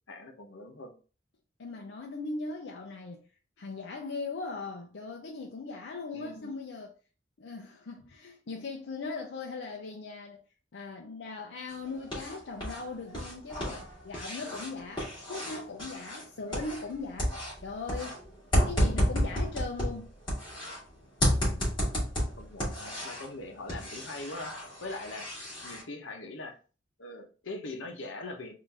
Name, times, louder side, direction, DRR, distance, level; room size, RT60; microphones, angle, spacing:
voice 1, 0.1-1.0 6.1-6.5 21.2-21.7 22.4-25.3 25.6-26.6 27.0-28.5, left 2 dB, 90° left, 0.9 m, -42 dB
voice 2, 1.6-3.3 3.6-6.9 7.4-10.4 10.7-18.2 18.6-20.1, left 3 dB, 70° left, 0.5 m, -39 dB
sound 1, 11.7-12.8 13.1-16.9 17.2-20.8 21.2-23.3 23.7-25.8, equal, 25° left, 1.9 m, -31 dB
3.8 x 2.5 x 3.3 m
head